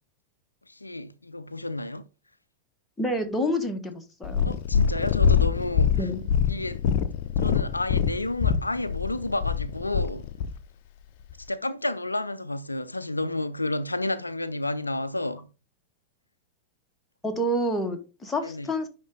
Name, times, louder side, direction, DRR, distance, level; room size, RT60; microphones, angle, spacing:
voice 1, 0.7-2.0 4.4-6.1 6.5-6.8 7.4-10.3 11.4-15.5 18.4-18.7, left 2 dB, 85° left, 0.4 m, -31 dB
voice 2, 3.0-4.5 5.9-6.2 17.2-18.9, equal, 10° left, 1.4 m, -28 dB
Purr, 4.2-10.6 11.3-11.4, left 7 dB, 50° left, 0.7 m, -24 dB
10.0 x 3.8 x 3.7 m
figure-of-eight pair, 90°, 0 cm